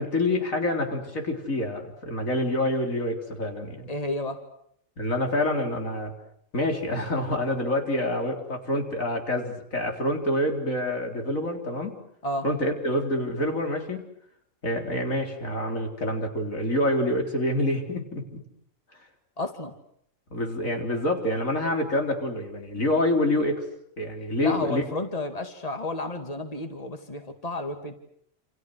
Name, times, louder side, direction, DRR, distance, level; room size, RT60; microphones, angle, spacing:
voice 1, 0.0-3.9 5.0-6.1 6.5-12.0 12.4-14.1 14.6-18.4 20.3-23.6 24.0-24.8, left 1 dB, 90° left, 3 dB, 4.3 m, -27 dB
voice 2, 3.9-4.4 12.2-12.5 19.4-19.7 24.4-27.9, left 2 dB, 30° left, 6 dB, 2.6 m, -31 dB
29.0 x 28.5 x 6.4 m, 0.69 s
omnidirectional pair, 1.4 m